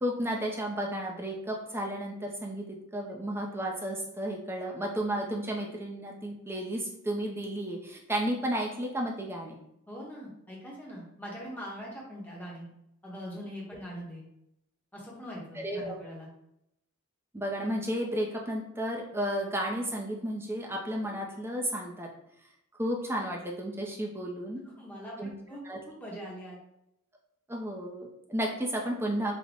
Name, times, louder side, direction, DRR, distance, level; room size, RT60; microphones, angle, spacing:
voice 1, 0.0-2.6 2.9-9.6 15.5-16.0 17.3-22.1 22.8-24.6 25.2-25.3 25.6-25.8 27.5-29.3, right 1 dB, 10° right, -1 dB, 0.4 m, -33 dB
voice 2, 9.9-12.7 13.0-14.2 14.9-16.3 24.6-26.6, equal, 10° left, -4 dB, 0.8 m, -42 dB
3.4 x 2.1 x 3.7 m, 0.81 s
head